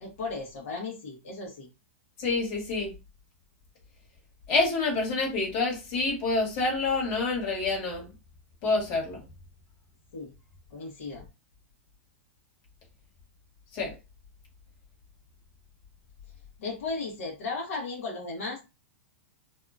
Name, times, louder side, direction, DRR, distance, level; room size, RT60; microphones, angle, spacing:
voice 1, 0.0-1.7 10.1-10.3 10.7-11.2 16.6-18.6, left 3 dB, 75° left, 1.1 m, -35 dB
voice 2, 2.2-2.9 4.5-8.1 8.6-9.2 13.7-13.9, left 3 dB, 45° left, 1.4 m, -27 dB
2.8 x 2.3 x 2.4 m
hypercardioid pair, 135°, 7 cm